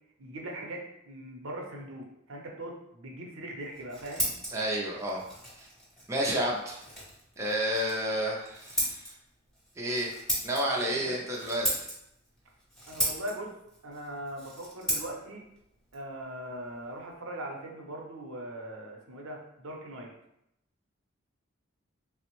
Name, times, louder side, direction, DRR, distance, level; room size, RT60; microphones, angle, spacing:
voice 1, 0.2-4.3 10.9-11.2 12.9-13.5 13.8-15.4 15.9-20.1, right 1 dB, 80° right, 0 dB, 0.7 m, -40 dB
Scissors, 3.6-17.2, right 1 dB, 5° left, 0.8 m, -37 dB
voice 2, 4.5-5.2 5.6-5.7 6.1-6.8 7.4-9.1 9.8-10.1 10.4-11.9, equal, 15° right, -3 dB, 0.4 m, -30 dB
3.4 x 2.0 x 2.9 m, 0.79 s
head